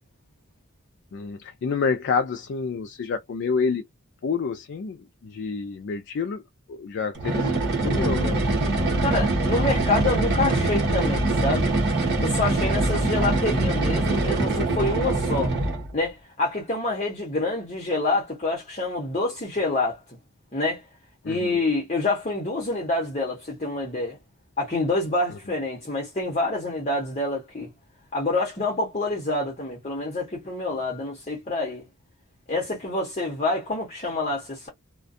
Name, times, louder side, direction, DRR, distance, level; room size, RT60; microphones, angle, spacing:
voice 1, 1.1-3.8 4.2-5.0 5.2-6.4 6.7-8.4 12.9-13.1 21.2-21.5, left 5 dB, 50° left, 0.3 m, -28 dB
sound 1, 7.1-15.9, right 2 dB, 50° right, 0.9 m, -23 dB
voice 2, 9.0-11.8 12.2-15.5 15.9-20.0 20.5-20.8 21.3-24.2 24.6-27.7 28.1-31.8 32.5-34.7, left 2 dB, 30° left, 0.9 m, -27 dB
2.5 x 2.2 x 2.5 m
head